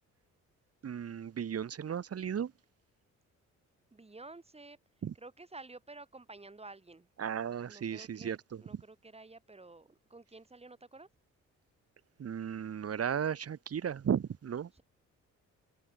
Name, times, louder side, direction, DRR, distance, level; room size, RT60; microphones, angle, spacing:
voice 1, 0.8-2.5 5.0-5.1 7.2-8.6 12.2-14.7, right 8 dB, 50° right, 3.4 m, -35 dB
voice 2, 3.9-4.8 5.1-7.1 7.7-11.1 14.7-14.8, right 3 dB, 20° right, 6.0 m, -51 dB
cardioid pair, 90°, 30 cm